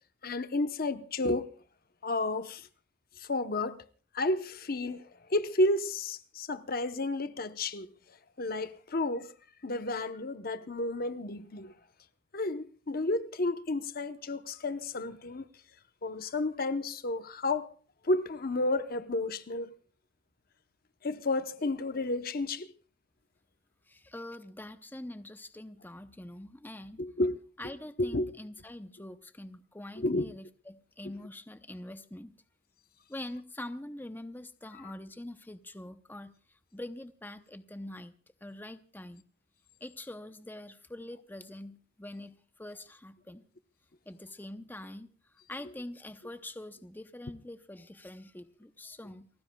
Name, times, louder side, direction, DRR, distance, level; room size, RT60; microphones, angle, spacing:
voice 1, 0.2-1.5 2.0-2.7 3.2-3.8 4.1-7.9 8.4-9.3 9.6-11.7 12.3-15.5 16.0-17.7 18.0-19.8 21.0-22.7 27.0-27.4 28.0-28.3 30.0-30.3 31.0-31.1, left 2 dB, 50° left, 0.9 m, -31 dB
voice 2, 23.9-27.0 27.6-32.4 33.1-36.3 36.7-38.1 38.4-39.2 39.8-43.4 44.1-45.1 45.5-49.3, left 1 dB, 10° left, 0.7 m, -44 dB
30.0 x 15.0 x 2.3 m
head